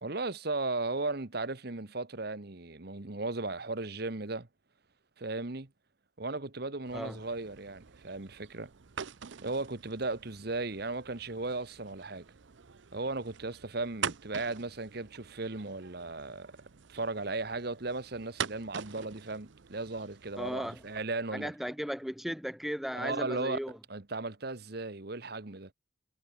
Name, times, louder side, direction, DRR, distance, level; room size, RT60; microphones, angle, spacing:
voice 1, 0.0-4.5 5.2-5.7 6.2-8.7 9.4-12.2 12.9-16.5 16.9-21.5 22.9-23.6 23.9-25.7, right 3 dB, 50° right, 1.3 m, -36 dB
sound 1, 6.9-21.0, right 7 dB, 70° right, 0.7 m, -45 dB
voice 2, 20.4-20.8 21.3-23.8, equal, ahead, 0.5 m, -36 dB
head